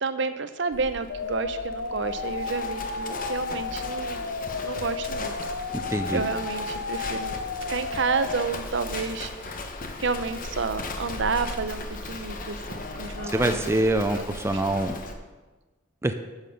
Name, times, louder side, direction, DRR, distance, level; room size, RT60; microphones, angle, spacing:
voice 1, 0.0-4.3 4.6-5.4 6.1-7.4 7.7-9.7 10.0-13.7 14.1-14.3 14.5-14.6, right 4 dB, 60° right, 11 dB, 0.7 m, -30 dB
Livestock farm animals working animals, 0.7-15.1, left 2 dB, 45° left, 1.0 m, -37 dB
sound 1, 1.1-8.4, left 4 dB, 90° left, 0.7 m, -33 dB
voice 2, 5.7-6.2 13.3-15.0 16.0-16.1, right 1 dB, 15° right, 7 dB, 0.4 m, -25 dB
9.3 x 7.3 x 6.6 m, 1.3 s
head